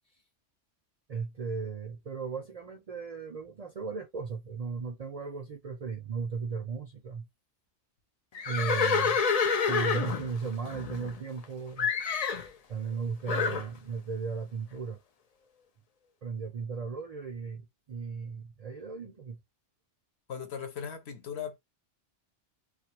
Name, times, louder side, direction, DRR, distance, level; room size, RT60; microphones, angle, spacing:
voice 1, 1.1-7.3 8.5-9.2 9.6-11.9 12.7-15.0 16.2-19.4, right 5 dB, 55° right, 0.4 m, -36 dB
Livestock farm animals working animals, 8.3-11.4 11.8-12.5 13.3-13.7, left 5 dB, 85° left, 0.3 m, -28 dB
voice 2, 20.3-21.6, left 7 dB, 65° left, 0.9 m, -38 dB
2.3 x 2.3 x 2.8 m
omnidirectional pair, 1.2 m